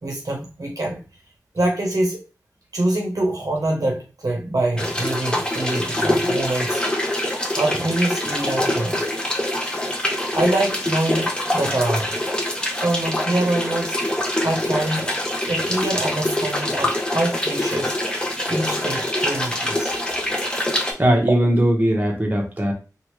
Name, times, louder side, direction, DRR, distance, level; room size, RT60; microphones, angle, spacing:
voice 1, 0.0-1.0 1.5-2.2 2.7-6.8 7.6-9.0 9.7-9.8 10.3-12.2 12.8-14.0 14.4-15.2 15.5-18.0 18.5-19.9, right 1 dB, 60° right, 0 dB, 0.8 m, -25 dB
sound 1, 4.8-20.9, left 1 dB, 15° left, 0.8 m, -24 dB
voice 2, 21.0-22.7, right 1 dB, 25° right, 0 dB, 1.0 m, -19 dB
3.0 x 2.4 x 3.0 m, 0.33 s
wide cardioid pair, 50°, 7 cm